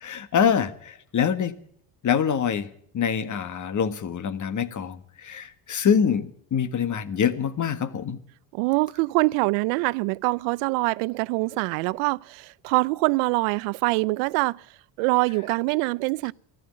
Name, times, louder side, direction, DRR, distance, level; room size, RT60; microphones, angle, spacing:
voice 1, 0.0-1.5 2.0-2.7 2.9-8.2, left 7 dB, 40° left, 1.4 m, -25 dB
voice 2, 8.5-14.6 15.0-16.3, right 25 dB, 85° right, 0.6 m, -24 dB
14.0 x 12.0 x 7.4 m
supercardioid pair, 90°, 47 cm